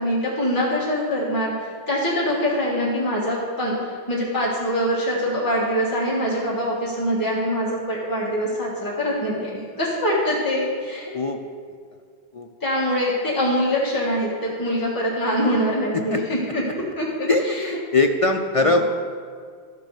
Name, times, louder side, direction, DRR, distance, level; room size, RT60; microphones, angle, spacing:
voice 1, 0.0-9.5 9.8-11.1 12.6-17.8 18.6-18.8, equal, 15° left, -7 dB, 1.8 m, -24 dB
voice 2, 17.3-18.8, left 3 dB, 55° left, 4 dB, 0.3 m, -21 dB
13.0 x 6.9 x 4.9 m, 2.1 s
omnidirectional pair, 1.2 m